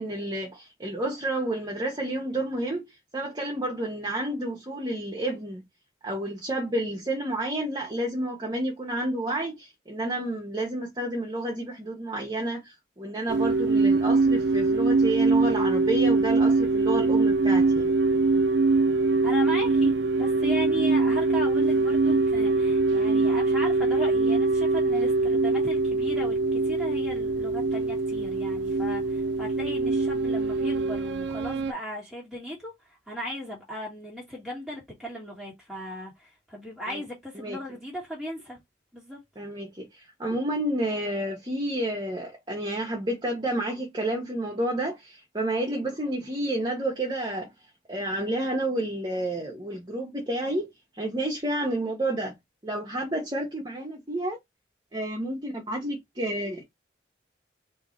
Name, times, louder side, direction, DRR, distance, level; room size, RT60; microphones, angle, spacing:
voice 1, 0.0-5.6 6.0-17.9 36.9-37.0 37.3-37.6 39.4-47.5 47.9-50.7 50.9-52.3 52.6-54.4 54.9-56.6, right 1 dB, 25° right, 1.0 m, -30 dB
sound 1, 13.3-31.7, right 3 dB, 70° right, 0.4 m, -23 dB
voice 2, 19.2-38.6 38.9-39.2, equal, ahead, 1.4 m, -37 dB
3.8 x 2.8 x 4.1 m
head